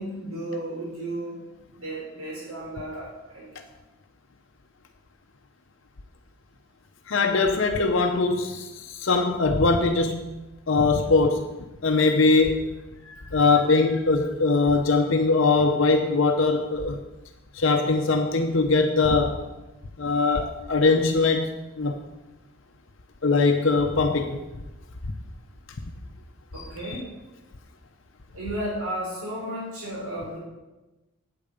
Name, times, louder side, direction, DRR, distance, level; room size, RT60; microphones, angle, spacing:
voice 1, 0.0-1.4 1.8-3.5 26.5-27.1 28.3-30.4, right 1 dB, 85° right, -4 dB, 4.0 m, -33 dB
voice 2, 7.1-10.3 10.7-11.5 11.8-12.6 13.1-17.0 17.5-19.4 20.0-22.0 23.2-24.4 26.6-27.0, left 3 dB, 60° left, 5 dB, 0.8 m, -22 dB
8.8 x 8.7 x 7.0 m, 1.1 s
head